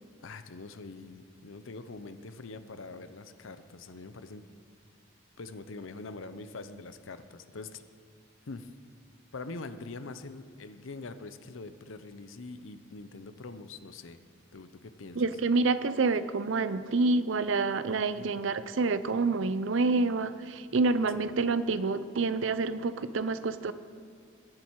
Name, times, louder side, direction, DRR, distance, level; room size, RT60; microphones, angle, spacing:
voice 1, 0.2-4.5 5.4-7.8 8.5-8.7 9.3-14.2 14.5-15.2 18.2-18.3 21.2-21.3, left 3 dB, 85° left, 11 dB, 0.7 m, -44 dB
voice 2, 15.1-23.7, right 3 dB, 75° right, 13 dB, 0.6 m, -28 dB
21.0 x 7.6 x 4.7 m, 2.2 s
head